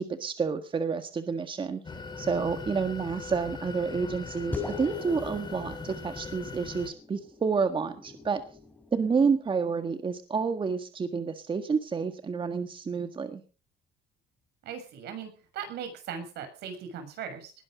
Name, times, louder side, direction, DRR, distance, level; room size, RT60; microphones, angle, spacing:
voice 1, 0.0-1.8 2.2-8.4 8.9-13.4, right 5 dB, 30° right, 8 dB, 1.6 m, -29 dB
sound 1, 1.8-6.9, left 4 dB, 25° left, 4.0 m, -40 dB
sound 2, 4.5-9.3, left 4 dB, 10° left, 4.2 m, -41 dB
voice 2, 14.6-17.5, right 7 dB, 75° right, 7 dB, 6.8 m, -39 dB
20.0 x 11.5 x 5.1 m, 0.39 s
cardioid pair, 110°, 17 cm